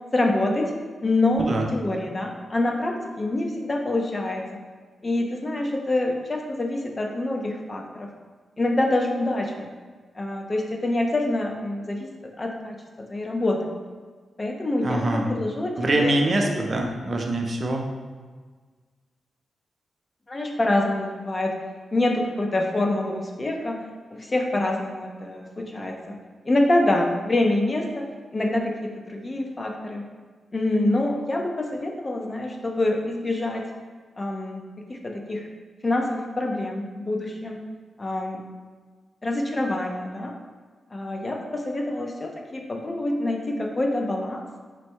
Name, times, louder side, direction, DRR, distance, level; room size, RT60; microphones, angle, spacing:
voice 1, 0.1-0.7 1.0-4.4 5.0-8.1 8.6-9.7 10.1-12.1 12.4-12.8 13.1-13.7 14.4-16.6 20.3-21.5 21.9-23.8 24.1-26.2 26.4-28.1 28.3-30.1 30.5-33.6 34.2-34.6 34.9-35.5 35.8-37.6 38.0-38.4 39.2-40.3 40.9-44.4, left 2 dB, 30° left, 2 dB, 0.5 m, -26 dB
voice 2, 1.4-1.7 14.8-15.3 15.8-17.8, right 1 dB, 45° right, 2 dB, 0.5 m, -24 dB
4.1 x 2.1 x 4.5 m, 1.4 s
cardioid pair, 80°, 0 cm